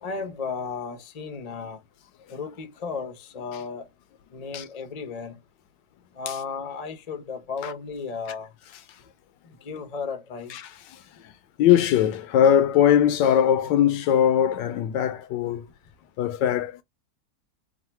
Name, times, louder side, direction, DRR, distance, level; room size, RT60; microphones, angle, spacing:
voice 1, 0.0-1.8 2.3-3.9 4.3-5.4 6.1-8.5 9.4-10.6 11.2-11.3, left 5 dB, 45° left, 0.5 m, -34 dB
voice 2, 11.6-15.7 16.2-16.8, left 10 dB, 75° left, 1.2 m, -20 dB
3.7 x 2.2 x 4.3 m
omnidirectional pair, 2.0 m